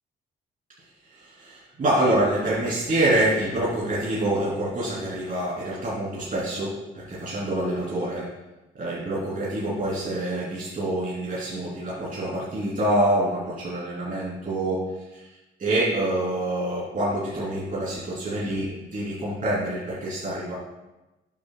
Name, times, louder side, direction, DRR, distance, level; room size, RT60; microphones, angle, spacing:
voice 1, 1.1-8.3 8.8-14.8 15.1-15.2 15.6-20.5, right 1 dB, 40° right, -7 dB, 3.1 m, -26 dB
11.5 x 7.6 x 2.3 m, 1.0 s
cardioid pair, 90°, 20 cm